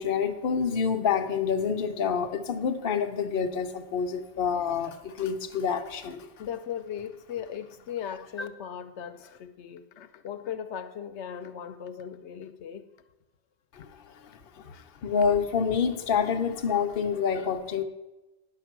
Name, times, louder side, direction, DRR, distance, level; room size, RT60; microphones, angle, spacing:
voice 1, 0.0-6.3 8.4-8.5 15.0-17.8, left 6 dB, 55° left, 5 dB, 0.9 m, -27 dB
voice 2, 6.4-12.9 13.8-13.9 14.6-15.1, left 8 dB, 85° left, 9 dB, 0.9 m, -38 dB
10.0 x 6.8 x 5.8 m, 1.0 s
omnidirectional pair, 1.1 m